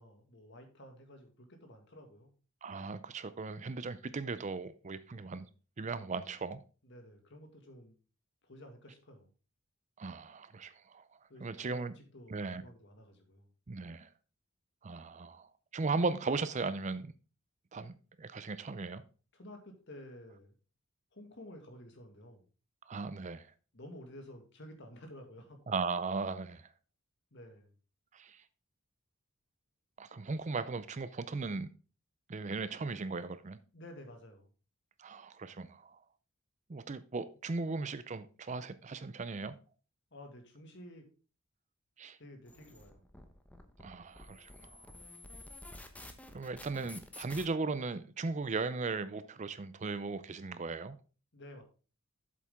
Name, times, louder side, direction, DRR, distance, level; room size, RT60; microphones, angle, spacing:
voice 1, 0.0-2.3 6.8-8.0 8.4-9.3 11.3-13.5 19.3-20.6 21.1-22.5 23.7-25.6 27.3-27.7 33.7-34.5 40.1-41.1 42.2-43.1 51.3-51.6, left 1 dB, 55° left, 2.0 m, -52 dB
voice 2, 2.6-5.5 5.8-6.6 10.0-11.0 11.4-11.9 12.3-12.6 13.7-14.1 14.8-17.1 17.7-19.0 22.9-23.5 25.7-26.7 28.1-28.4 30.0-31.7 32.3-33.6 35.0-36.0 36.7-39.6 42.0-42.2 43.8-44.9 46.3-51.0, right 4 dB, 35° right, 0.5 m, -37 dB
sound 1, 42.5-47.5, left 2 dB, 5° left, 0.9 m, -51 dB
8.2 x 7.5 x 3.6 m
head